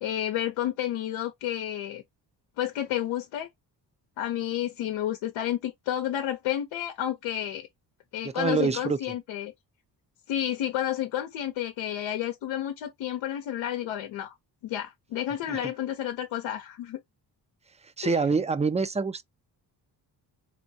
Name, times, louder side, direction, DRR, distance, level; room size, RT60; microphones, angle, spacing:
voice 1, 0.0-2.0 2.6-3.5 4.2-7.7 8.1-9.5 10.3-14.3 14.6-17.0 18.0-18.2, left 11 dB, 85° left, 0.8 m, -31 dB
voice 2, 8.2-9.0 15.5-15.7 18.0-19.2, right 4 dB, 15° right, 0.5 m, -26 dB
4.5 x 2.3 x 2.7 m
supercardioid pair, 60°, 45 cm